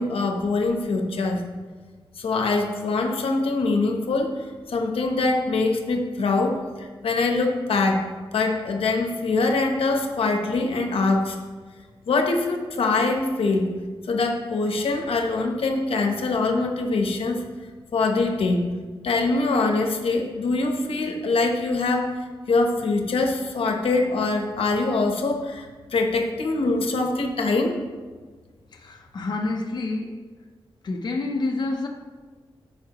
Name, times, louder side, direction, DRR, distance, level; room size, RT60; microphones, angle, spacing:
voice 1, 0.0-1.4 2.2-8.0 8.3-11.4 12.1-13.7 14.1-17.4 17.9-18.7 19.0-22.1 22.5-27.8, left 3 dB, 85° left, 3 dB, 0.9 m, -23 dB
voice 2, 28.7-30.1 30.8-31.9, left 2 dB, 50° left, 1 dB, 0.7 m, -28 dB
14.0 x 4.9 x 3.0 m, 1.4 s
wide cardioid pair, 175°, 9 cm